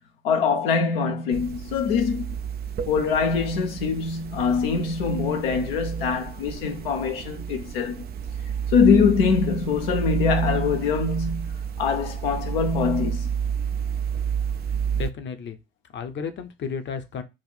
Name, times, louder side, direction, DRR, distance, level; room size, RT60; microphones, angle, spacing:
voice 1, 0.2-2.3 2.9-8.0 8.7-13.3, left 5 dB, 70° left, 0.8 m, -23 dB
sound 1, 1.3-15.1, right 8 dB, 35° right, 0.4 m, -30 dB
voice 2, 14.9-15.6 15.9-17.2, left 6 dB, 40° left, 0.9 m, -32 dB
6.2 x 2.5 x 3.2 m
figure-of-eight pair, 50°, 30 cm